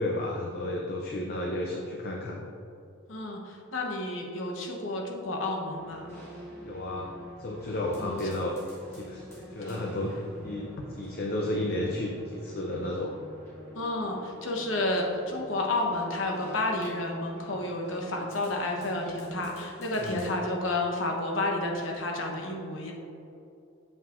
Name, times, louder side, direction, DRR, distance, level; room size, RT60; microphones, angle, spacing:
voice 1, 0.0-2.4 6.6-7.1 7.4-8.5 8.9-13.1 20.0-20.3, left 1 dB, 50° left, 0 dB, 0.5 m, -32 dB
voice 2, 3.1-6.1 8.0-8.2 9.6-9.8 13.7-22.9, left 2 dB, 70° left, 1 dB, 0.9 m, -31 dB
sound 1, 5.6-20.4, equal, 15° left, 1.3 m, -47 dB
7.3 x 5.5 x 2.5 m, 2.6 s
head